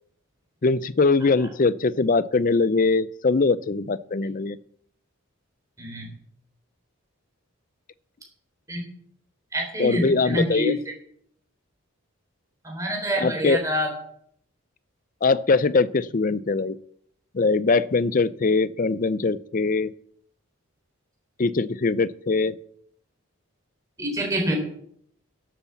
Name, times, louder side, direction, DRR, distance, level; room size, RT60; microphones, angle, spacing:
voice 1, 0.6-4.6 9.8-10.8 13.2-13.6 15.2-16.8 17.3-19.9 21.4-22.5, left 3 dB, 40° left, 17 dB, 0.5 m, -22 dB
voice 2, 9.5-10.7 12.6-13.9 24.0-24.5, equal, 15° right, 1 dB, 3.9 m, -26 dB
11.5 x 8.3 x 7.0 m, 0.67 s
head